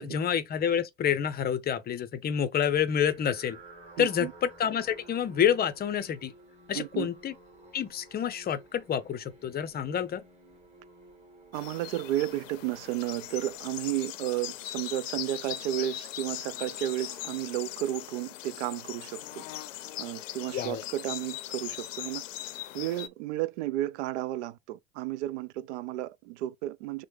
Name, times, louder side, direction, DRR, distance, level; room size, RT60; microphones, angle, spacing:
voice 1, 0.0-3.6 4.0-6.3 6.7-7.3 7.7-10.2 20.5-20.8, left 8 dB, 25° left, 0.6 m, -28 dB
sound 1, 3.0-14.5, right 2 dB, 20° right, 2.6 m, -54 dB
voice 2, 4.0-4.3 6.7-7.1 11.5-19.4 20.0-22.2 22.7-27.0, right 14 dB, 65° right, 0.5 m, -33 dB
sound 2, 11.5-23.1, left 14 dB, 75° left, 0.6 m, -40 dB
6.1 x 2.2 x 3.2 m
hypercardioid pair, 85°, 38 cm